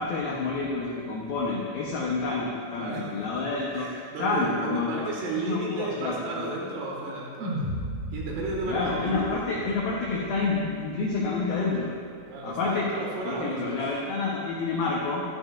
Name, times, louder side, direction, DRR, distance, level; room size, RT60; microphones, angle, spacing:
voice 1, 0.0-3.9 4.2-5.1 5.5-6.5 8.7-11.9 12.4-12.9 13.2-15.2, left 3 dB, 85° left, -3 dB, 2.1 m, -28 dB
voice 2, 2.8-3.4 3.7-7.7 8.1-9.4 12.3-13.8, right 2 dB, 85° right, -3 dB, 4.5 m, -33 dB
sound 1, 7.4-11.7, equal, 40° right, 1.4 m, -36 dB
12.0 x 12.0 x 2.5 m, 2.1 s
omnidirectional pair, 5.7 m